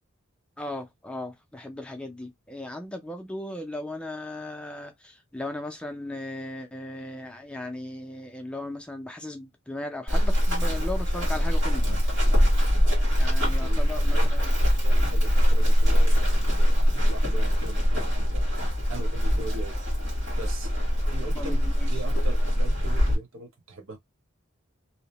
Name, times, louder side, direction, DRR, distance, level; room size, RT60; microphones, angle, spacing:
voice 1, 0.6-11.9 13.2-14.5 21.4-21.9, left 1 dB, 5° left, 0.4 m, -37 dB
Run, 10.1-23.2, equal, 60° right, 1.5 m, -22 dB
voice 2, 13.3-14.3 14.8-18.4 18.9-19.7 20.3-20.7 21.1-24.0, right 3 dB, 80° right, 0.9 m, -41 dB
2.7 x 2.0 x 2.8 m
head